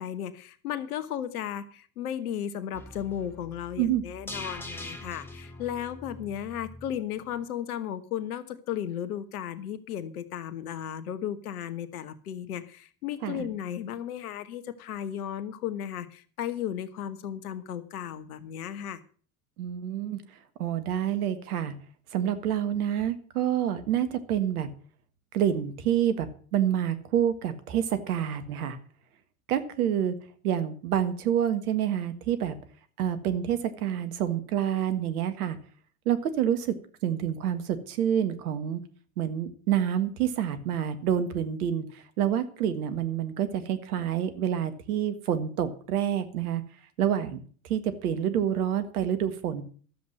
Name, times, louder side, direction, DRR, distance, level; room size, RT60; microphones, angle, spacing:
voice 1, 0.0-19.0, left 10 dB, 80° left, 12 dB, 1.3 m, -35 dB
sound 1, 2.7-6.9 7.3-7.4, left 1 dB, 5° left, 2.6 m, -43 dB
voice 2, 19.6-20.2 20.6-21.7 22.1-24.7 25.3-28.8 29.5-30.2 30.4-32.5 33.0-35.6 36.1-36.8 37.0-38.8 39.2-46.6 47.0-49.6, right 10 dB, 80° right, 11 dB, 1.7 m, -28 dB
12.5 x 7.8 x 7.5 m, 0.43 s
hypercardioid pair, 70°, 44 cm